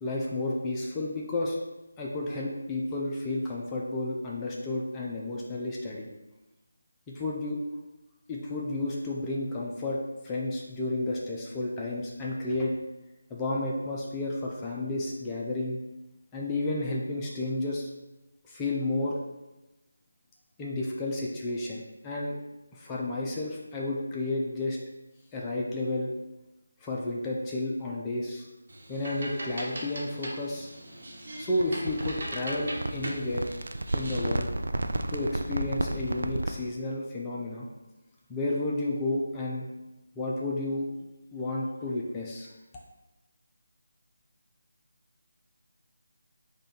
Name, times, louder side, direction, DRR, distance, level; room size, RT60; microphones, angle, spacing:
voice 1, 0.0-1.6 2.0-6.1 7.1-7.6 8.3-10.0 10.2-12.7 13.3-15.8 16.3-17.9 18.4-19.2 20.6-22.3 22.7-24.8 25.3-26.1 26.8-28.5 28.9-30.7 31.4-33.4 33.9-34.5 35.1-37.7 38.3-39.6 40.2-40.9 41.3-42.5, left 2 dB, 15° left, -4 dB, 0.5 m, -31 dB
sound 1, 28.7-34.4, right 1 dB, 50° right, 1.1 m, -40 dB
sound 2, 31.6-36.7, right 2 dB, 70° right, 0.4 m, -32 dB
4.8 x 2.4 x 4.5 m, 1.0 s
figure-of-eight pair, 155°, 0 cm